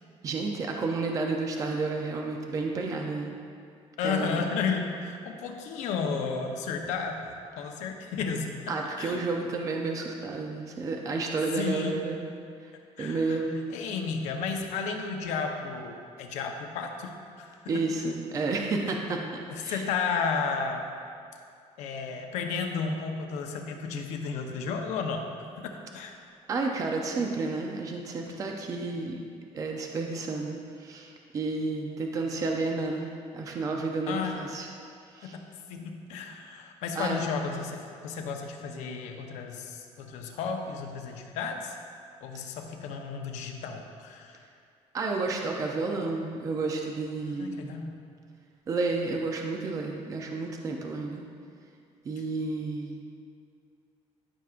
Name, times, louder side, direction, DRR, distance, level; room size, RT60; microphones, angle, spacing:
voice 1, 0.2-3.3 4.0-4.4 8.7-12.2 12.6-12.7 13.0-13.6 17.7-19.8 26.5-29.2 29.5-33.1 33.3-34.7 35.1-35.4 37.0-37.3 44.9-47.8 48.7-51.2 52.0-53.0, right 3 dB, 30° right, 1 dB, 0.5 m, -31 dB
voice 2, 4.0-8.5 9.0-9.2 11.5-12.0 13.0-13.4 13.7-17.1 17.4-17.6 19.1-19.2 19.5-20.8 21.8-25.2 25.9-26.1 34.1-34.4 35.7-41.8 42.2-44.4 47.4-47.9, left 5 dB, 80° left, 3 dB, 0.8 m, -33 dB
12.5 x 5.9 x 2.5 m, 2.3 s
cardioid pair, 170°, 12 cm